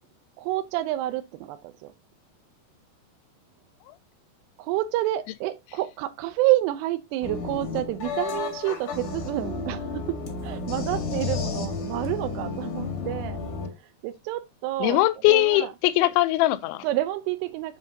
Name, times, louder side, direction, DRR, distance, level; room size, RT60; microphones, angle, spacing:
voice 1, 0.4-1.9 4.6-13.4 13.7-15.7 16.8-17.8, right 15 dB, 80° right, 2.5 m, -29 dB
sound 1, 7.2-13.7, left 4 dB, 55° left, 3.0 m, -32 dB
voice 2, 14.8-16.9, left 17 dB, 85° left, 3.0 m, -21 dB
6.9 x 6.7 x 2.7 m
omnidirectional pair, 5.2 m